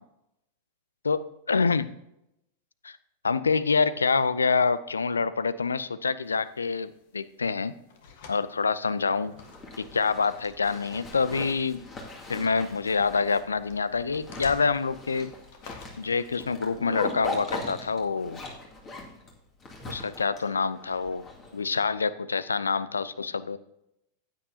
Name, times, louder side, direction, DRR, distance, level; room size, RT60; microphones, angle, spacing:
voice 1, 1.0-1.9 2.8-3.0 3.2-7.7 8.3-9.3 9.8-11.8 12.3-15.3 16.0-18.4 19.9-21.2 21.5-23.6, left 4 dB, 75° left, 17 dB, 0.4 m, -26 dB
sound 1, 6.2-18.2, left 5 dB, 55° left, 1.5 m, -52 dB
Zipper (clothing), 9.4-21.9, left 2 dB, 25° left, 2.2 m, -40 dB
15.0 x 9.0 x 2.8 m, 0.82 s
figure-of-eight pair, 90°, 0 cm